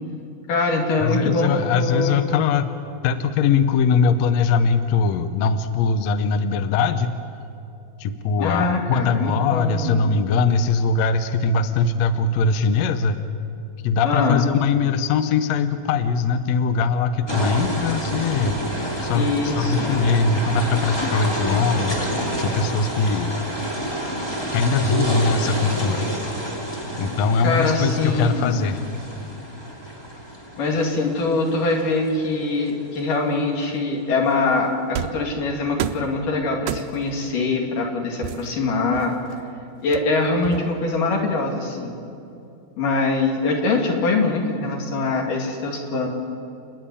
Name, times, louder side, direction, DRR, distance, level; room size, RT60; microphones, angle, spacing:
voice 1, 0.5-2.3 8.4-10.1 14.0-14.4 19.2-20.0 27.4-28.6 30.6-39.2 39.8-42.0 42.8-46.1, left 3 dB, 90° left, 1 dB, 4.1 m, -23 dB
voice 2, 1.0-2.7 3.0-7.1 8.0-13.2 13.8-18.6 19.0-22.0 22.4-23.3 24.5-26.1 27.0-28.8, left 5 dB, 70° left, 10 dB, 1.9 m, -21 dB
sound 1, 17.3-33.2, right 1 dB, 10° left, 1.9 m, -29 dB
sound 2, 35.0-35.3 35.8-36.2 36.7-37.2 38.2-39.4 39.9-40.9, right 10 dB, 80° right, 1.9 m, -31 dB
29.5 x 10.0 x 10.0 m, 2.7 s
omnidirectional pair, 3.7 m